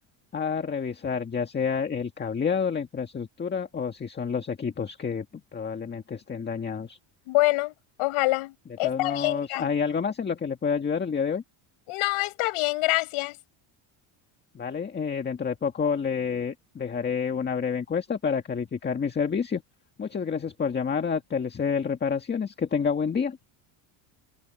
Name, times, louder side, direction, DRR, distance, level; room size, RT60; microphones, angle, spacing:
voice 1, 0.3-5.3 5.5-7.0 8.8-11.4 14.5-19.6 20.0-23.4, left 6 dB, 20° left, 1.7 m, -28 dB
voice 2, 7.3-7.7 8.0-9.7 11.9-13.4, left 21 dB, 75° left, 6.6 m, -26 dB
cardioid pair, 160°, 50 cm